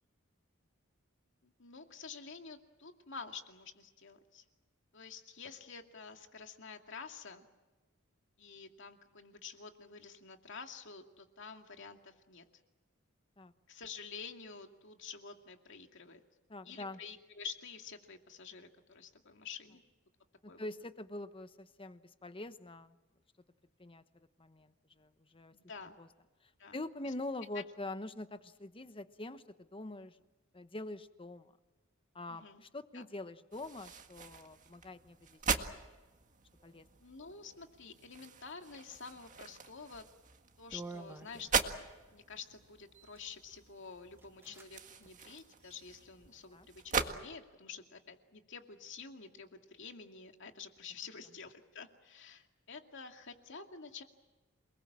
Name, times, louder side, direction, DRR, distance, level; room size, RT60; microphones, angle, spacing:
voice 1, 1.4-4.4 4.9-7.5 8.4-12.4 13.7-16.2 16.6-19.8 20.5-20.7 25.5-26.0 26.6-27.1 32.3-32.6 32.9-33.1 37.0-40.0 40.6-41.8 42.1-54.0, left 5 dB, 65° left, 4 dB, 2.4 m, -49 dB
voice 2, 16.5-17.0 20.6-23.0 23.8-24.0 24.4-25.5 26.0-26.1 26.7-29.4 29.7-30.2 30.5-31.5 32.1-35.4 36.6-36.9 46.5-46.7, left 2 dB, 25° left, 11 dB, 1.1 m, -44 dB
sound 1, 33.5-47.1, right 5 dB, 40° right, 1.8 m, -41 dB
sound 2, 39.9-40.1 40.7-41.9 42.8-43.3 43.8-43.9 44.2-44.7 45.0-45.1 45.6-46.3, right 3 dB, 10° right, 1.5 m, -50 dB
28.0 x 21.0 x 7.6 m, 1.2 s
head